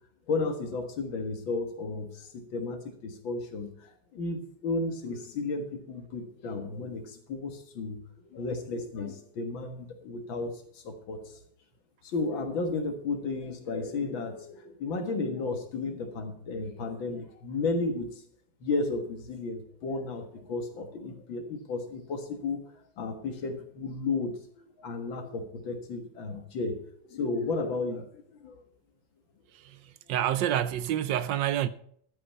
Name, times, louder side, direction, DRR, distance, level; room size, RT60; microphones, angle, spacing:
voice 1, 0.3-8.0 8.3-11.2 12.0-18.2 18.6-22.6 23.0-28.6, left 3 dB, 85° left, 2.4 m, -33 dB
voice 2, 30.1-31.7, right 11 dB, 75° right, 1.3 m, -27 dB
12.5 x 8.6 x 5.5 m
omnidirectional pair, 2.1 m